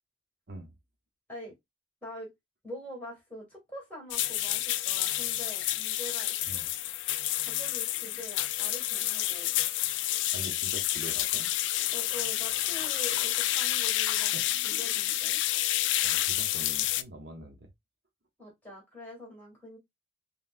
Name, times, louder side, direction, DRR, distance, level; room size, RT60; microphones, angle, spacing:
voice 1, 2.0-2.3 2.6-6.7 7.4-9.5 11.9-15.4 18.4-19.8, left 1 dB, 10° left, 2.2 m, -44 dB
sound 1, 4.1-17.0, left 14 dB, 85° left, 0.3 m, -29 dB
voice 2, 10.3-11.5 14.3-14.4 16.0-17.7, right 1 dB, 60° right, 0.9 m, -44 dB
5.6 x 2.3 x 2.5 m
head